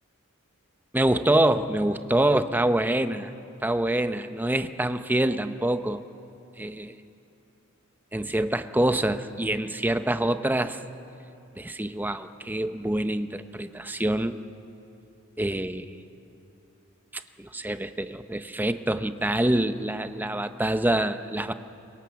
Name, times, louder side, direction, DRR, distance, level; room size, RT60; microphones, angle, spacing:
voice 1, 0.9-3.3 3.6-6.0 6.6-6.9 8.1-10.8 11.6-14.4 15.4-15.9 17.1-21.5, right 1 dB, 10° right, 10 dB, 0.7 m, -26 dB
24.0 x 22.0 x 7.0 m, 2.7 s
head